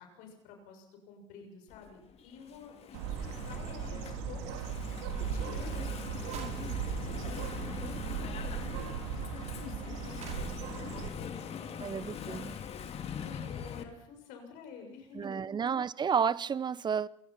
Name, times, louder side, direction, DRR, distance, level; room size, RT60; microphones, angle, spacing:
voice 1, 0.0-5.0 5.3-9.2 9.6-12.6 13.2-15.4, left 6 dB, 65° left, 6.8 m, -51 dB
Engine / Mechanisms, 1.7-13.8, left 7 dB, 45° left, 2.6 m, -43 dB
Bird, 2.9-11.1, right 7 dB, 75° right, 3.4 m, -37 dB
sound 1, 6.3-8.0 9.6-9.7 10.2-13.2 13.6-13.7 14.2-14.3 15.1-15.3, right 6 dB, 50° right, 5.2 m, -54 dB
voice 2, 11.8-12.5 15.2-17.1, right 7 dB, 30° right, 0.9 m, -31 dB
28.0 x 17.0 x 5.9 m
hypercardioid pair, 70°, 15 cm